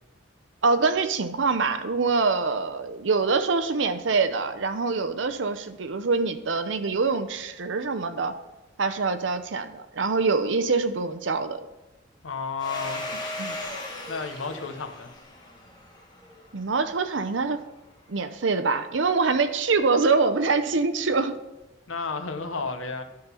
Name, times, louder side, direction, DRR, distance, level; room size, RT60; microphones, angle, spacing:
voice 1, 0.6-8.3 8.8-11.6 13.4-13.6 16.5-17.6 18.1-21.4, right 4 dB, 70° right, 9 dB, 0.7 m, -25 dB
voice 2, 12.2-13.1 14.1-15.1 21.9-23.0, left 4 dB, 90° left, 7 dB, 0.9 m, -32 dB
Domestic sounds home sounds, 12.6-17.0, left 2 dB, 20° left, 1.2 m, -37 dB
11.5 x 3.9 x 5.7 m, 1.0 s
head